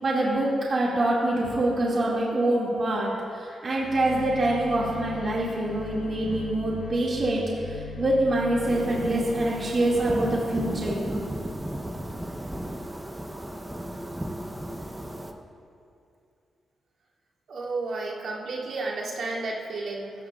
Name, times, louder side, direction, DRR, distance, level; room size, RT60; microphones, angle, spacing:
voice 1, 0.0-11.2, right 1 dB, 35° right, -6 dB, 2.3 m, -25 dB
sound 1, 3.8-10.1, left 4 dB, 85° left, 3.3 m, -39 dB
sound 2, 8.7-15.3, right 1 dB, 10° right, 0.8 m, -35 dB
voice 2, 17.5-20.1, right 3 dB, 65° right, -5 dB, 2.9 m, -32 dB
24.0 x 14.5 x 2.5 m, 2.5 s
wide cardioid pair, 175°, 0 cm